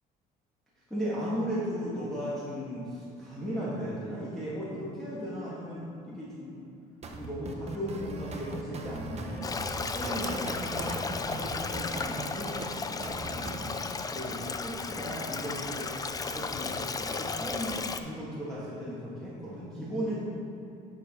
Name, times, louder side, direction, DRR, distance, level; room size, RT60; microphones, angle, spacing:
voice 1, 0.9-6.6 7.1-9.5 9.8-13.7 14.1-15.9 16.2-20.2, equal, ahead, -10 dB, 1.7 m, -36 dB
sound 1, 7.0-13.7, right 3 dB, 40° right, 0.8 m, -40 dB
Stream, 9.4-18.0, left 4 dB, 20° left, 0.4 m, -34 dB
9.9 x 5.8 x 3.8 m, 2.8 s
cardioid pair, 110°, 17 cm